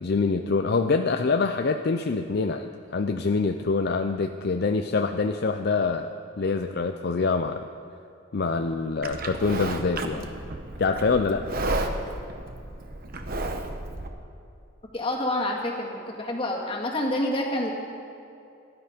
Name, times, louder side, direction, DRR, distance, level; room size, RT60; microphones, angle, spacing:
voice 1, 0.0-7.7 8.3-10.3 10.8-11.4, left 4 dB, 55° left, 6 dB, 0.5 m, -25 dB
Livestock farm animals working animals, 9.0-14.1, right 2 dB, 45° right, 1.0 m, -32 dB
voice 2, 14.9-17.7, left 1 dB, 25° left, -1 dB, 1.9 m, -28 dB
17.0 x 12.0 x 5.1 m, 2.6 s
head